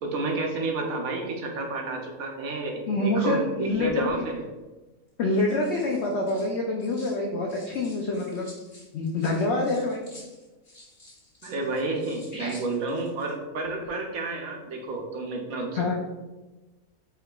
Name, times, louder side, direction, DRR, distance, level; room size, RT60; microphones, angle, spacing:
voice 1, 0.0-4.4 11.4-15.9, right 3 dB, 70° right, 2 dB, 1.0 m, -30 dB
voice 2, 2.9-4.1 5.2-8.5 8.9-10.0 12.3-12.5 15.7-15.9, left 2 dB, 75° left, 0 dB, 0.6 m, -26 dB
sound 1, 3.7-4.2 5.1-7.2 7.5-13.3 13.6-13.9, left 1 dB, 35° left, 1.4 m, -52 dB
4.6 x 3.6 x 2.3 m, 1.1 s
omnidirectional pair, 1.7 m